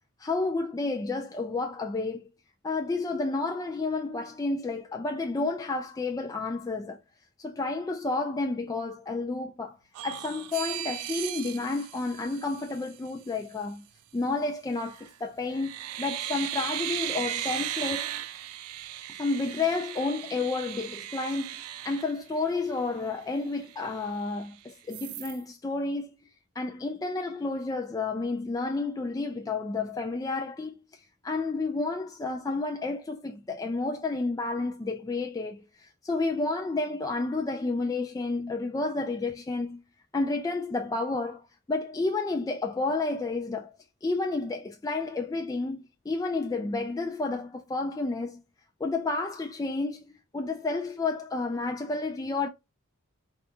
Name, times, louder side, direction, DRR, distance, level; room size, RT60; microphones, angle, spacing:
voice 1, 0.2-2.2 2.6-7.0 7.4-9.8 10.0-13.9 14.1-15.7 16.0-18.1 19.2-26.1 26.6-39.8 40.1-43.7 44.0-48.4 48.8-50.1 50.3-52.5, left 3 dB, 15° left, 0.3 m, -31 dB
sound 1, 9.9-13.0 14.8-15.1 15.5-22.8 23.2-23.3 23.6-24.5 24.9-25.4, right 13 dB, 85° right, 0.4 m, -37 dB
4.4 x 2.4 x 2.8 m
head